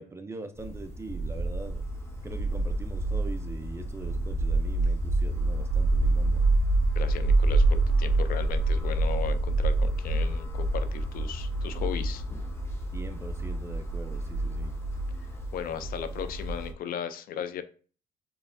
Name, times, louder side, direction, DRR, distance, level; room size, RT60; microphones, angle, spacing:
voice 1, 0.0-1.8 2.2-6.4 12.9-14.7, right 2 dB, 15° right, 7 dB, 0.5 m, -42 dB
sound 1, 0.6-16.7, right 2 dB, 15° left, 0.9 m, -27 dB
sound 2, 4.8-11.2, left 3 dB, 40° right, 0.9 m, -45 dB
voice 2, 7.0-12.2 15.5-17.6, left 8 dB, 60° left, 11 dB, 0.5 m, -36 dB
4.6 x 3.1 x 2.6 m, 0.40 s
cardioid pair, 110°, 17 cm